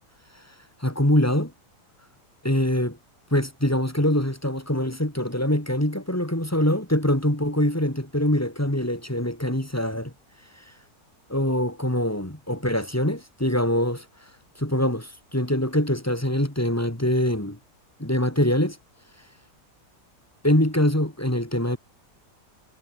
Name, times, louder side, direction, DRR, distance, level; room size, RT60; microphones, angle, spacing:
voice 1, 0.8-1.5 2.4-3.0 3.3-10.1 11.3-14.0 14.6-17.6 18.0-18.8 20.4-21.8, left 1 dB, 10° left, 3.1 m, -24 dB
omnidirectional pair, 1.8 m